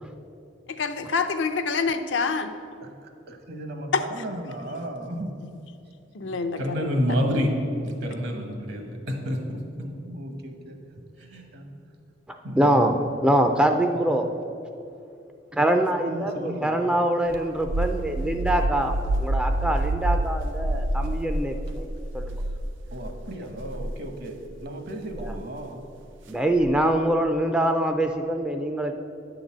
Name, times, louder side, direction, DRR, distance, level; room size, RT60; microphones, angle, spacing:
voice 1, 0.7-2.5 3.9-4.0 6.1-7.2, left 4 dB, 75° left, 8 dB, 0.5 m, -27 dB
voice 2, 2.8-5.3 9.8-10.8 11.5-11.7 16.1-16.9 22.5-22.6 22.9-25.8, right 1 dB, 60° right, 5 dB, 1.0 m, -36 dB
voice 3, 6.2-7.5 7.8-8.8 9.2-9.4 11.3-11.4 12.4-13.1, equal, 75° right, 2 dB, 1.5 m, -27 dB
voice 4, 12.6-13.0 13.2-14.3 15.5-21.9 22.1-22.4 25.2-25.3 26.3-28.9, right 1 dB, 5° right, 5 dB, 0.3 m, -24 dB
sound 1, 17.3-23.2 23.6-23.9 25.1-25.4 26.6-27.0, right 1 dB, 90° right, 0.5 m, -28 dB
9.7 x 3.9 x 7.3 m, 2.7 s
head